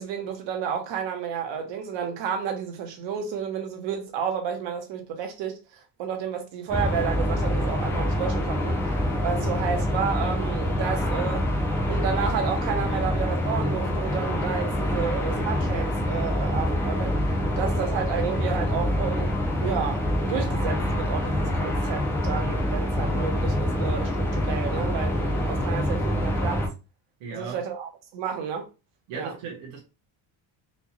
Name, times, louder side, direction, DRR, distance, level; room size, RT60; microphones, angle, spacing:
voice 1, 0.0-8.8 9.2-11.5 11.9-17.1 17.6-26.6 27.3-28.7 29.1-29.3, right 7 dB, 65° right, 1.0 m, -31 dB
sound 1, 6.7-26.7, left 1 dB, 5° left, 0.3 m, -26 dB
voice 2, 27.2-27.6 29.1-29.8, right 5 dB, 90° right, 1.2 m, -37 dB
4.3 x 2.2 x 2.9 m
cardioid pair, 180°, 48 cm